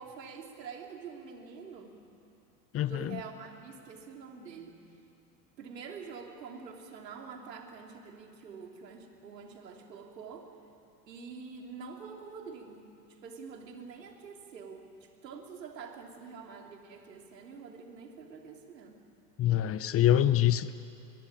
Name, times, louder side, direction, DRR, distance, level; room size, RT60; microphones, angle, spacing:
voice 1, 0.0-2.0 2.8-4.8 5.6-10.5 11.1-19.0, right 5 dB, 75° right, 3 dB, 3.3 m, -46 dB
voice 2, 2.7-3.2 19.4-20.7, left 12 dB, 30° left, 15 dB, 0.8 m, -25 dB
22.0 x 22.0 x 9.0 m, 2.6 s
hypercardioid pair, 85°, 49 cm